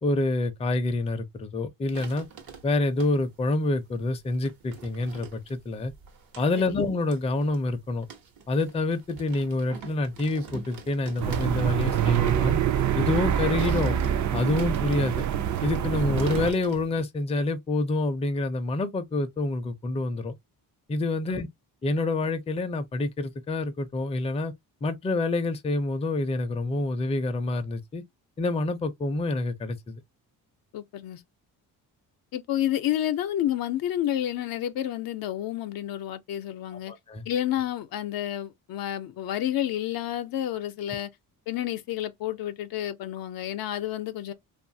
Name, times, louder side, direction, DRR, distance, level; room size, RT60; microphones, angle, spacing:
voice 1, 0.0-2.3 2.6-5.9 6.4-8.1 8.5-12.6 12.9-14.0 14.3-15.2 15.6-20.4 20.9-21.5 21.8-24.5 24.8-28.0 28.4-30.0 36.9-37.2, left 2 dB, 20° left, 0.4 m, -27 dB
sound 1, 1.9-3.4 4.1-17.0, right 5 dB, 75° right, 1.0 m, -44 dB
sound 2, 11.2-16.5, right 9 dB, 55° right, 0.5 m, -25 dB
voice 2, 30.7-31.2 32.3-36.9 37.3-41.1 41.5-44.3, left 12 dB, 75° left, 0.6 m, -30 dB
2.6 x 2.4 x 2.6 m
cardioid pair, 110°, 36 cm